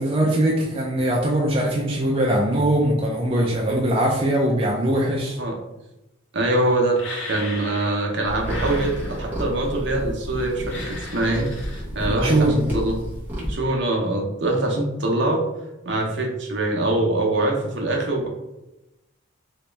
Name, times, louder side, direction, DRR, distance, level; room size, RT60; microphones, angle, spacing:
voice 1, 0.0-5.4 12.1-12.7, right 1 dB, 25° right, -3 dB, 0.4 m, -21 dB
voice 2, 6.3-11.5 11.9-13.0 13.5-15.5 15.9-18.3, right 2 dB, 60° right, 0 dB, 0.7 m, -23 dB
sound 1, 7.0-8.1 8.4-9.5 10.6-11.8, left 2 dB, 70° left, 1.0 m, -36 dB
sound 2, 8.2-13.6, equal, 10° right, 0.9 m, -31 dB
3.0 x 2.8 x 3.3 m, 0.94 s
head